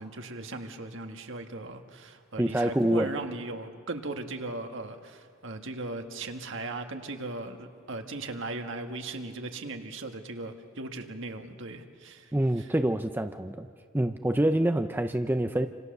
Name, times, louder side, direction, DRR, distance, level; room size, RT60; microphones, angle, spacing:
voice 1, 0.0-12.3 12.6-12.7, right 2 dB, 60° right, 5 dB, 1.7 m, -38 dB
voice 2, 2.4-3.1 12.3-13.7 13.9-15.7, right 1 dB, 10° right, 7 dB, 0.5 m, -26 dB
27.5 x 27.0 x 6.7 m, 2.4 s
head